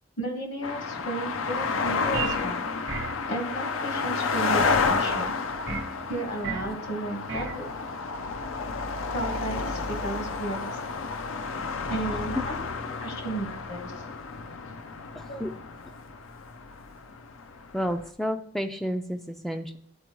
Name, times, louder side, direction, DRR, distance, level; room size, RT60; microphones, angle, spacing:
voice 1, 0.2-2.7 3.3-5.3 6.1-7.7 9.1-10.8 11.9-12.6 13.0-14.0 15.3-15.4, right 2 dB, 60° left, 2 dB, 1.4 m, -34 dB
sound 1, 0.6-18.1, left 4 dB, 85° left, 0.6 m, -31 dB
sound 2, 2.1-2.5 2.9-3.2 5.7-5.9 6.4-6.8 7.3-7.6, right 5 dB, 65° right, 0.8 m, -33 dB
voice 2, 15.1-15.5 17.7-19.8, equal, ahead, 7 dB, 0.3 m, -31 dB
11.0 x 4.2 x 3.0 m, 0.70 s
head